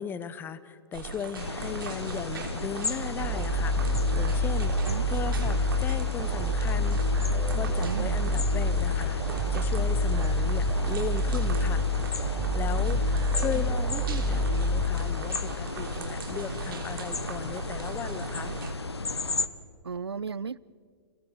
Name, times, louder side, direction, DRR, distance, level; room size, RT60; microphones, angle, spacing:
voice 1, 0.0-4.7 5.1-7.0 7.5-9.2 9.5-11.9 12.5-18.5, left 7 dB, 15° left, 16 dB, 0.9 m, -37 dB
sound 1, 0.9-18.7, right 5 dB, 60° right, 3.2 m, -39 dB
sound 2, 1.4-19.5, left 3 dB, 80° left, 1.0 m, -35 dB
sound 3, 3.2-15.4, left 1 dB, 20° right, 4.5 m, -27 dB
voice 2, 7.8-8.2 12.7-13.0 19.8-20.6, right 5 dB, 80° right, 22 dB, 0.5 m, -35 dB
30.0 x 29.5 x 4.2 m, 2.1 s
figure-of-eight pair, 115°, 13 cm